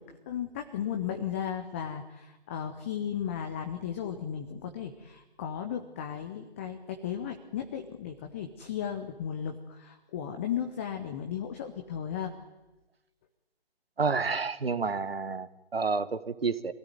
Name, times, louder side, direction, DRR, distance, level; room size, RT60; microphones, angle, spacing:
voice 1, 0.0-12.3, left 9 dB, 10° left, 5 dB, 0.8 m, -35 dB
voice 2, 14.0-16.7, right 4 dB, 65° right, 14 dB, 1.6 m, -30 dB
25.0 x 17.0 x 9.5 m, 1.1 s
figure-of-eight pair, 145°, 32 cm